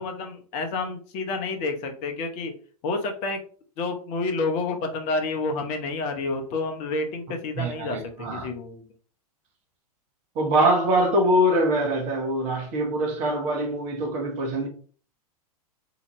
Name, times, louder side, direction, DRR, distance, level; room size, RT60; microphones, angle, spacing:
voice 1, 0.0-2.5 2.8-3.4 3.8-8.8, left 3 dB, 35° left, 0.7 m, -29 dB
voice 2, 7.6-8.5 10.3-14.7, right 1 dB, 35° right, 1.1 m, -23 dB
4.1 x 2.9 x 3.0 m
figure-of-eight pair, 100°, 20 cm